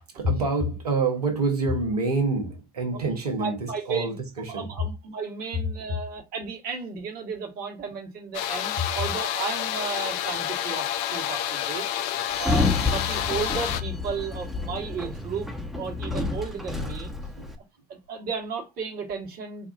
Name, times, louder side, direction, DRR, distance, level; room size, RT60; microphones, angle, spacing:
voice 1, 0.1-4.7 14.8-14.9 17.3-17.5, right 3 dB, 85° right, 0.9 m, -27 dB
voice 2, 2.9-4.1 4.5-11.9 12.4-15.5 15.8-17.1 17.9-19.7, right 5 dB, 50° right, 1.3 m, -34 dB
sound 1, 8.3-13.8, left 11 dB, 60° left, 0.5 m, -29 dB
Sliding door, 12.3-17.6, left 3 dB, ahead, 0.9 m, -29 dB
4.6 x 2.3 x 2.4 m
hypercardioid pair, 65°, 19 cm